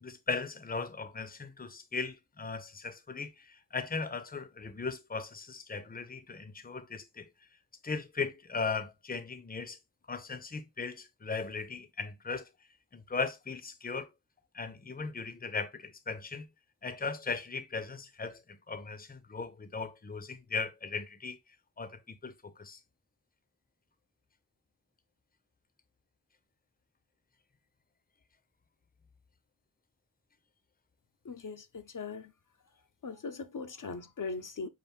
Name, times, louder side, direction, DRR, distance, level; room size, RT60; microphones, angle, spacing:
voice 1, 0.0-7.3 7.8-9.8 10.1-12.4 12.9-14.1 14.5-16.5 16.8-21.4 21.8-22.8, left 4 dB, 25° left, 0.6 m, -38 dB
voice 2, 31.2-32.3 33.0-34.7, left 4 dB, 65° left, 0.6 m, -40 dB
5.7 x 2.5 x 3.4 m
wide cardioid pair, 55°, 34 cm